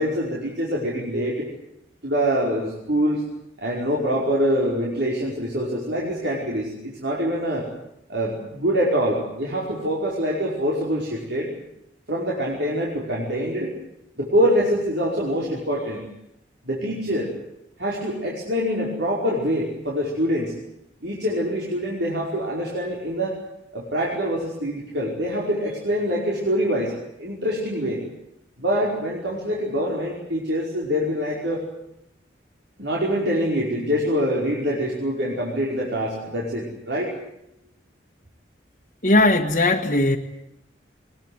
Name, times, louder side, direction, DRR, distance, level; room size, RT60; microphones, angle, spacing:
voice 1, 0.0-1.5 2.0-3.2 3.6-7.7 8.1-11.5 12.1-13.7 14.2-16.1 16.6-17.3 17.8-20.5 21.0-23.4 23.7-28.0 28.6-31.7 32.8-37.1, equal, 75° right, -4 dB, 5.3 m, -25 dB
voice 2, 39.0-40.2, left 2 dB, 45° left, 1 dB, 1.5 m, -18 dB
22.5 x 21.5 x 9.6 m, 0.80 s
head